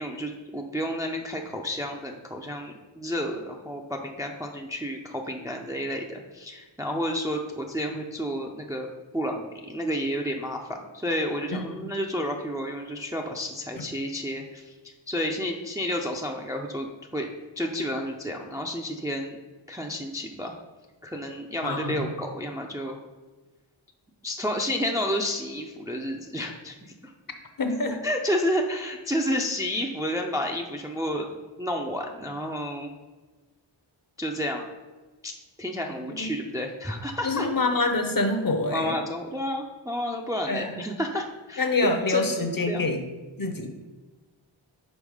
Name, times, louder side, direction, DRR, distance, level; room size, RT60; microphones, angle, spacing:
voice 1, 0.0-8.9 9.1-10.6 10.9-14.7 15.1-17.3 17.6-19.4 19.7-20.5 21.0-23.0 24.2-26.8 27.0-27.1 27.9-32.9 34.2-34.6 35.2-35.3 35.6-37.5 38.7-42.8, equal, 5° right, 2 dB, 0.4 m, -31 dB
voice 2, 21.6-22.1 27.6-28.0 36.1-36.3 37.2-39.0 40.5-40.7 41.6-43.0 43.4-43.7, left 2 dB, 45° left, 6 dB, 0.8 m, -26 dB
5.4 x 4.0 x 4.9 m, 1.2 s
wide cardioid pair, 85°, 48 cm